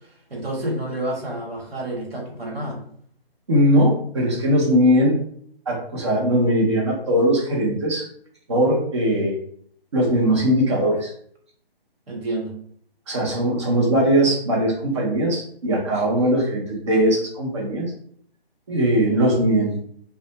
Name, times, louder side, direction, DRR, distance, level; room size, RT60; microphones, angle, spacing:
voice 1, 0.0-2.8 12.1-12.5, right 1 dB, 75° right, -2 dB, 1.2 m, -29 dB
voice 2, 3.5-5.2 5.7-8.1 8.5-9.4 9.9-11.1 13.1-17.9 18.7-19.8, equal, 30° right, -2 dB, 0.7 m, -20 dB
2.5 x 2.1 x 2.9 m, 0.63 s
figure-of-eight pair, 150°, 30 cm